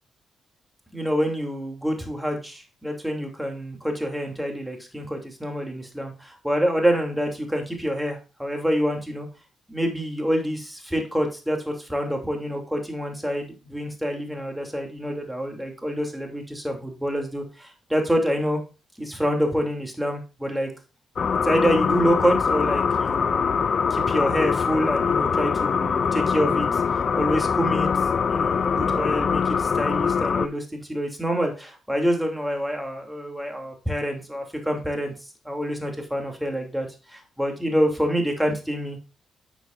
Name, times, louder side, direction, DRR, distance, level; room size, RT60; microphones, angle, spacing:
voice 1, 0.9-9.3 9.7-18.6 19.0-20.7 21.4-23.6 23.9-26.8 27.1-27.9 28.2-35.1 35.4-39.0, equal, 5° right, 2 dB, 2.8 m, -27 dB
sound 1, 21.2-30.5, left 6 dB, 55° left, 0.4 m, -23 dB
9.9 x 6.1 x 2.6 m, 0.31 s
supercardioid pair, 55°, 0 cm